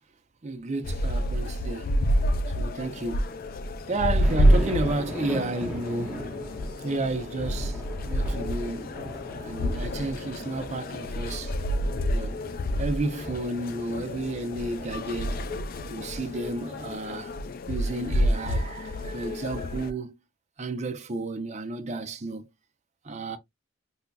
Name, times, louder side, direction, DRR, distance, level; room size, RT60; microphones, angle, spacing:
voice 1, 0.4-1.9 2.5-3.3 3.9-6.2 6.8-8.9 9.4-11.6 12.1-12.4 12.8-15.4 15.9-17.3 17.7-20.1 20.6-22.5 23.0-23.4, right 2 dB, 35° right, 0.6 m, -32 dB
sound 1, 0.8-19.9, equal, 45° left, 0.4 m, -28 dB
sound 2, 4.2-16.9, equal, 5° right, 1.0 m, -40 dB
5.4 x 2.2 x 2.3 m
head